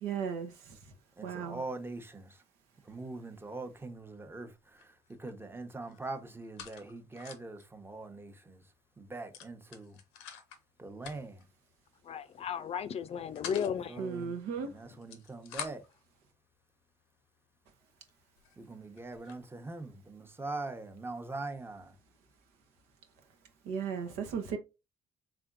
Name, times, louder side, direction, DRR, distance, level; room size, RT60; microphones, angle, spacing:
voice 1, 0.0-0.8 1.2-1.6 14.0-14.7 23.6-24.6, right 6 dB, 80° right, 1.0 m, -36 dB
voice 2, 1.2-2.4 2.8-8.6 9.0-10.0 10.8-11.4 13.9-14.4 14.6-15.8 18.6-21.9, right 2 dB, 15° right, 0.9 m, -42 dB
sound 1, 3.9-4.2 4.5-5.3 5.6-7.6 8.0-8.1 8.4-8.6 9.3-10.6 11.0-11.5 12.2-12.5 12.9-13.7 14.8-16.0 16.7-16.8 17.4-17.5 18.1-18.2 18.4-19.4, left 8 dB, 90° left, 0.7 m, -47 dB
voice 3, 12.0-14.0, left 7 dB, 45° left, 0.5 m, -35 dB
3.6 x 3.4 x 2.5 m
hypercardioid pair, 60°, 14 cm